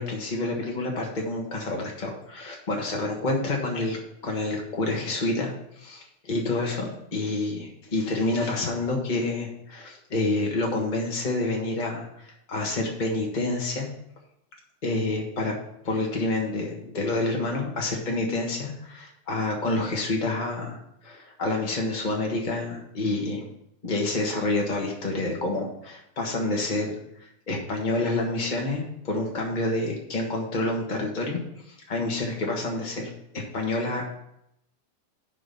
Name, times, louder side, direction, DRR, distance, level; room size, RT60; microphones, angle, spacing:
voice 1, 0.0-13.9 14.8-15.5 15.8-20.8 21.0-23.4 23.8-27.0 27.5-31.4 31.7-34.1, left 2 dB, 60° left, -1 dB, 0.4 m, -28 dB
11.0 x 3.9 x 6.7 m, 0.78 s
omnidirectional pair, 3.4 m